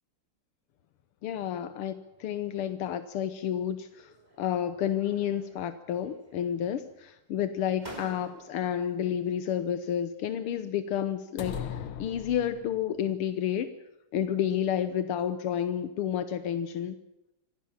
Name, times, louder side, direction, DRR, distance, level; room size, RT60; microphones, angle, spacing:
voice 1, 1.2-4.1 4.4-11.5 12.0-13.7 14.1-17.0, left 9 dB, 85° left, 10 dB, 1.9 m, -30 dB
sound 1, 4.0-4.6 4.9-5.7 6.0-6.8 7.4-7.5 7.8-8.8, right 1 dB, 20° right, 3.5 m, -49 dB
sound 2, 11.4-13.0, left 8 dB, 70° left, 2.0 m, -38 dB
25.5 x 17.5 x 7.3 m, 0.88 s
omnidirectional pair, 2.4 m